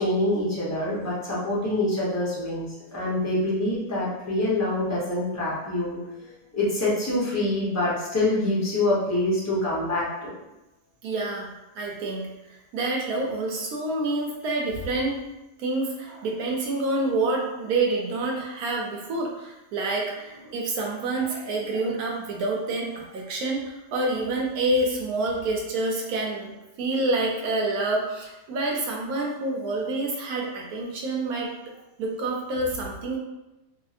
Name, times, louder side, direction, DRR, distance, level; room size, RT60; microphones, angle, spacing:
voice 1, 0.0-2.7 2.9-6.0 6.5-10.3, left 1 dB, 15° left, -7 dB, 0.5 m, -25 dB
voice 2, 11.0-11.5 11.8-12.3 12.7-15.2 15.6-26.5 26.8-31.5 32.0-33.2, right 2 dB, 85° right, -1 dB, 1.1 m, -27 dB
2.7 x 2.7 x 2.4 m, 0.96 s
omnidirectional pair, 1.5 m